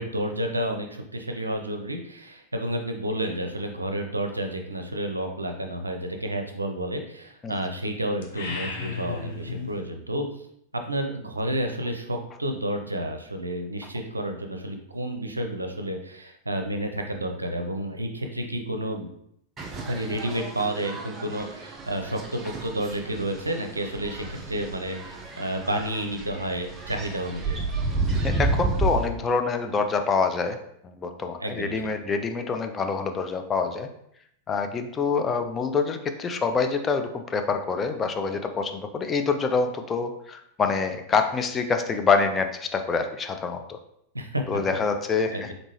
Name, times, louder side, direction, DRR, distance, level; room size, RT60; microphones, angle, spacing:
voice 1, 0.0-10.2 10.8-19.1 19.9-27.6 31.4-31.7 44.1-44.6 45.3-45.5, right 1 dB, 80° right, 5 dB, 0.5 m, -30 dB
sound 1, 8.2-9.8, left 4 dB, 55° left, 0.8 m, -34 dB
sound 2, 19.6-29.1, right 3 dB, 20° right, 0.7 m, -31 dB
voice 2, 28.2-30.6 30.8-33.9 34.5-43.8 44.5-45.5, left 4 dB, 20° left, 6 dB, 0.4 m, -26 dB
3.8 x 3.6 x 3.0 m, 0.73 s
figure-of-eight pair, 90°, 0 cm